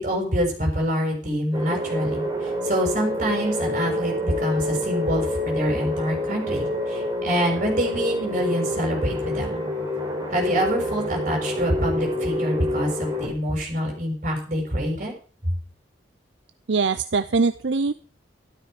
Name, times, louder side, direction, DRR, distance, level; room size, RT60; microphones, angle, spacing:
voice 1, 0.0-2.2 2.6-9.6 10.3-15.1, equal, 40° right, 1 dB, 6.4 m, -26 dB
sound 1, 1.5-13.3, left 1 dB, 20° right, 4.1 m, -28 dB
voice 2, 16.7-17.9, right 4 dB, 70° right, 11 dB, 0.6 m, -22 dB
13.0 x 12.5 x 5.1 m, 0.39 s
head